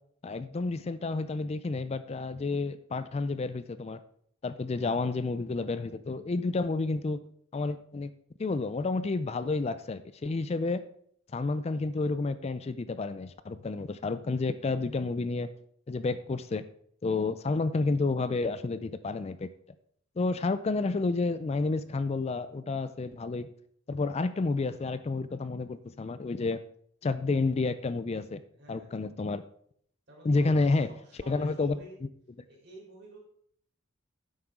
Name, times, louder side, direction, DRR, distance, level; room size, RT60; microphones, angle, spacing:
voice 1, 0.2-4.0 4.4-7.2 7.5-8.1 8.4-10.8 11.3-15.5 15.9-16.6 17.0-19.5 20.2-23.5 23.9-26.6 27.0-28.4 28.7-29.4 30.2-30.9 31.3-31.7, left 3 dB, 30° left, 13 dB, 0.3 m, -30 dB
voice 2, 28.5-29.0 30.1-32.0 32.5-33.2, right 1 dB, 55° right, -1 dB, 3.9 m, -50 dB
10.5 x 7.9 x 3.7 m, 0.65 s
head